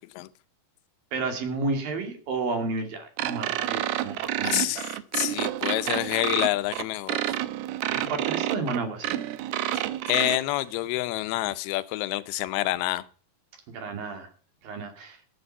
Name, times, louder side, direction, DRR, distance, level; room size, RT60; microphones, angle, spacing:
voice 1, 1.1-4.8 7.9-9.2 13.7-14.3 14.6-15.2, right 3 dB, 60° right, 5 dB, 4.1 m, -31 dB
sound 1, 3.2-10.4, right 14 dB, 80° right, 2.6 m, -29 dB
voice 2, 4.4-7.2 9.7-13.1, left 16 dB, 80° left, 14 dB, 2.5 m, -28 dB
14.0 x 8.9 x 5.4 m, 0.42 s
omnidirectional pair, 4.7 m